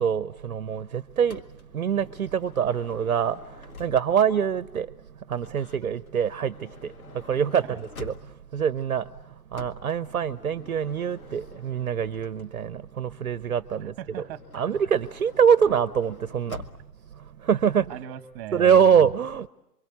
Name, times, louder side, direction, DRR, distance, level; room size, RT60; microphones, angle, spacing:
voice 1, 0.0-1.4 1.7-3.4 3.8-4.9 5.3-6.5 6.8-6.9 7.3-7.6 8.0-8.1 8.5-9.0 9.5-13.9 14.5-16.6 17.5-17.9 18.5-19.5, right 7 dB, 55° right, 1.1 m, -24 dB
Motor vehicle (road) / Sliding door, 1.3-4.4 5.3-8.6 9.5-12.8 14.1-17.0, left 4 dB, 60° left, 2.0 m, -48 dB
voice 2, 13.8-14.4 17.8-19.1, right 10 dB, 20° right, 1.8 m, -39 dB
28.0 x 24.0 x 8.5 m
figure-of-eight pair, 135°, 49 cm